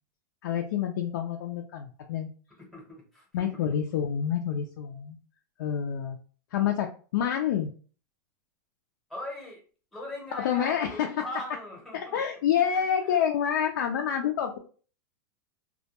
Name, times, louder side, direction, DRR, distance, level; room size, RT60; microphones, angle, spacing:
voice 1, 0.4-2.3 3.3-5.2 5.6-6.2 6.5-7.7 10.3-11.1 11.9-14.6, left 9 dB, 80° left, 3 dB, 0.4 m, -28 dB
voice 2, 2.6-3.6 9.1-9.6 9.9-12.2 12.6-13.2, left 1 dB, ahead, -2 dB, 0.8 m, -41 dB
2.2 x 2.1 x 2.8 m, 0.40 s
supercardioid pair, 165°, 10 cm